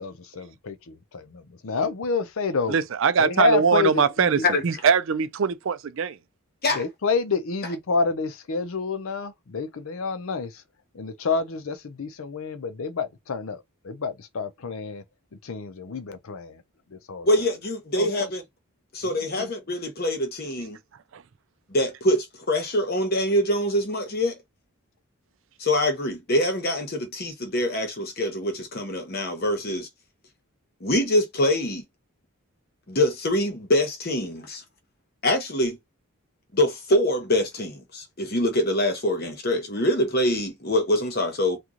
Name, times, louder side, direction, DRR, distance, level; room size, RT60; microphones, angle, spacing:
voice 1, 0.0-2.8 3.2-4.4 6.7-10.6 10.9-15.0 15.4-16.6 16.9-17.3 17.9-18.1 19.0-19.5, left 4 dB, 65° left, 0.5 m, -29 dB
voice 2, 2.7-6.2 21.1-21.2, right 6 dB, 60° right, 0.4 m, -22 dB
voice 3, 17.2-18.4 18.9-20.8 21.7-24.3 25.6-29.9 30.8-31.8 32.9-34.6 35.2-35.8 36.5-41.6, left 1 dB, 45° left, 0.9 m, -24 dB
3.0 x 2.3 x 3.7 m
head